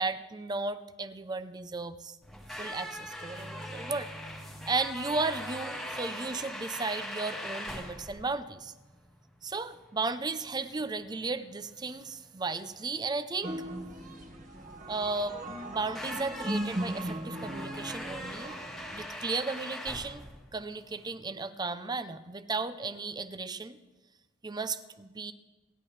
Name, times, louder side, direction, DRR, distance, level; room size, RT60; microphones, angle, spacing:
voice 1, 0.0-2.2 2.6-4.1 4.7-8.7 9.4-13.5 14.9-18.6 18.9-20.2 20.5-23.8 24.4-25.3, right 3 dB, 20° right, 12 dB, 0.6 m, -34 dB
sound 1, 2.2-21.1, left 1 dB, ahead, 1.5 m, -42 dB
sound 2, 13.4-19.0, right 1 dB, 45° right, 1.7 m, -38 dB
28.5 x 10.5 x 3.3 m, 1.2 s
head